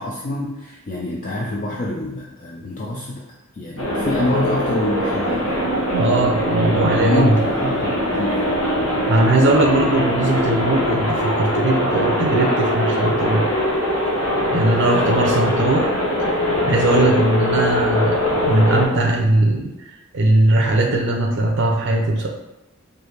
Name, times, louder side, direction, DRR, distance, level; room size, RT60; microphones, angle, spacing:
voice 1, 0.0-3.3 3.5-5.5 7.0-8.5 14.7-15.3, left 1 dB, 40° left, -3 dB, 0.4 m, -26 dB
sound 1, 3.8-18.9, equal, 70° left, 0.9 m, -21 dB
voice 2, 5.9-7.4 9.1-13.5 14.5-15.9 16.3-18.2 18.5-19.7 20.1-22.3, right 2 dB, 55° right, 0 dB, 0.5 m, -19 dB
4.6 x 2.6 x 3.2 m, 0.98 s
head